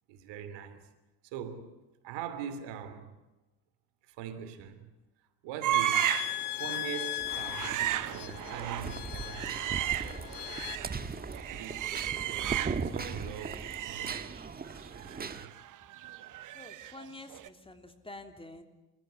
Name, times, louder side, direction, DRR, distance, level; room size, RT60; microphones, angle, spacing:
voice 1, 0.1-0.8 1.2-1.8 2.0-3.1 4.0-4.9 5.4-6.2 6.6-10.1 11.5-14.2 15.0-15.5, right 8 dB, 65° right, 3.1 m, -42 dB
sound 1, 5.6-6.4 6.7-6.9 7.3-11.0 11.3-13.0 13.3-17.1 17.3-17.5, right 13 dB, 40° right, 1.0 m, -34 dB
sound 2, 5.7-10.8, left 16 dB, 45° left, 0.9 m, -38 dB
sound 3, 7.2-15.5, right 4 dB, 20° right, 1.5 m, -39 dB
voice 2, 16.5-18.6, left 2 dB, 10° left, 3.1 m, -48 dB
29.0 x 15.0 x 9.7 m
hypercardioid pair, 75°, 47 cm